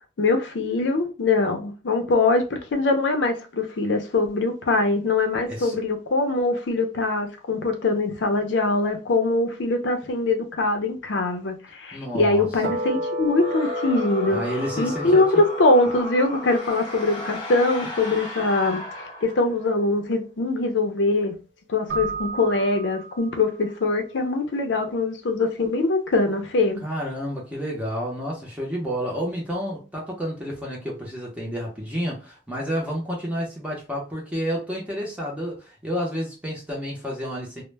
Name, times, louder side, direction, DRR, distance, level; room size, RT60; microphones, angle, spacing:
voice 1, 0.2-14.4 14.8-21.3 21.7-26.8, left 2 dB, 90° left, 0.6 m, -23 dB
voice 2, 5.5-5.8 11.9-12.5 14.3-15.2 26.8-37.6, equal, 10° right, 0.6 m, -30 dB
sound 1, 12.6-19.1, equal, 65° right, 1.0 m, -33 dB
sound 2, 13.3-19.8, left 1 dB, 30° left, 0.8 m, -36 dB
Keyboard (musical), 21.9-23.7, right 5 dB, 80° right, 0.4 m, -33 dB
2.1 x 2.1 x 3.2 m
head